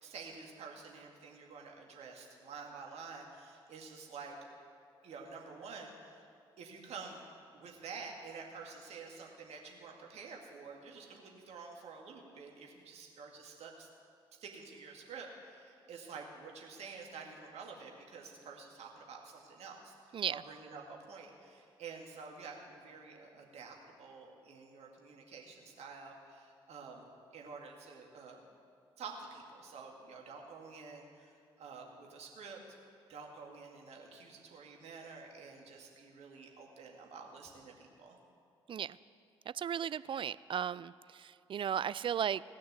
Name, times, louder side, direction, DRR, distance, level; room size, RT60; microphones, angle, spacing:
voice 1, 0.0-4.4 5.0-6.2 6.6-7.2 7.5-13.9 14.4-27.0 27.3-28.4 29.0-32.6 33.1-38.2, right 4 dB, 65° right, 0 dB, 2.2 m, -49 dB
voice 2, 39.5-42.4, right 9 dB, 45° right, 18 dB, 0.4 m, -35 dB
17.5 x 6.5 x 9.6 m, 2.3 s
hypercardioid pair, 40°, 12 cm